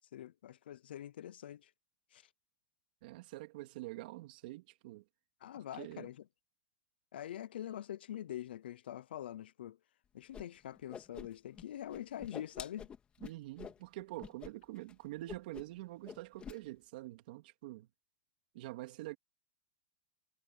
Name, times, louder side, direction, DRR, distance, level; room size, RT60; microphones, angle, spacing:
voice 1, 0.0-1.7 2.1-2.3 5.4-6.3 7.1-9.8 10.1-12.9, left 11 dB, 90° left, 0.7 m, -45 dB
voice 2, 3.0-5.0 5.7-6.1 13.2-17.9 18.5-19.2, right 18 dB, 60° right, 2.7 m, -46 dB
Whoosh swoosh swish, 10.3-10.4 10.7-11.6 11.9-13.8 14.2-14.5 14.8-14.9 15.3-16.6, left 7 dB, 20° left, 2.3 m, -47 dB
supercardioid pair, 150°, 5 cm